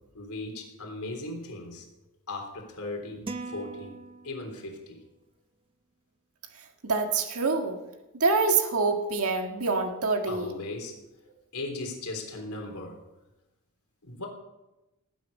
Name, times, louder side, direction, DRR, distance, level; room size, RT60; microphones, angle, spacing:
voice 1, 0.1-1.8 2.3-3.9 4.2-5.0 10.3-10.9 11.5-13.0 14.0-14.3, left 2 dB, 80° left, 2 dB, 3.5 m, -37 dB
sound 1, 3.3-4.8, right 3 dB, 25° right, 0.8 m, -40 dB
voice 2, 6.8-7.8 8.2-10.5, right 4 dB, 75° right, 4 dB, 1.7 m, -26 dB
19.0 x 9.5 x 5.4 m, 1.0 s
head